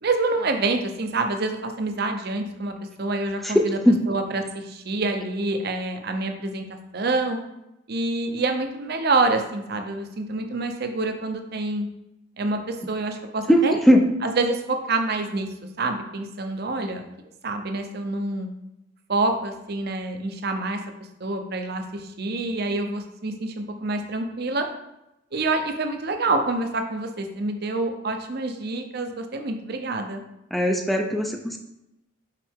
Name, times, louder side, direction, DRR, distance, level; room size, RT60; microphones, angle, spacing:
voice 1, 0.0-3.8 4.1-7.4 7.9-11.9 12.4-13.7 14.2-17.1 17.4-18.5 19.1-20.8 21.2-24.7 25.3-30.2, right 2 dB, 50° right, 6 dB, 0.7 m, -27 dB
voice 2, 3.4-4.0 13.5-14.1 30.5-31.6, equal, ahead, 4 dB, 0.4 m, -19 dB
5.7 x 4.6 x 3.6 m, 0.89 s
head